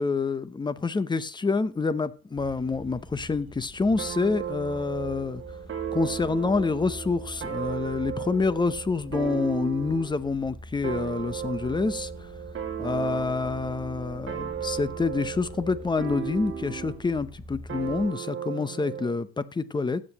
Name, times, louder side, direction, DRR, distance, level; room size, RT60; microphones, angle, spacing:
voice 1, 0.0-5.4 5.9-12.1 12.8-20.0, left 4 dB, 15° left, 0.7 m, -27 dB
sound 1, 2.3-18.1, equal, 20° right, 6.0 m, -44 dB
sound 2, 4.0-10.2 10.8-17.1 17.7-19.2, right 9 dB, 40° right, 1.9 m, -35 dB
15.5 x 7.5 x 2.9 m
cardioid pair, 115°, 32 cm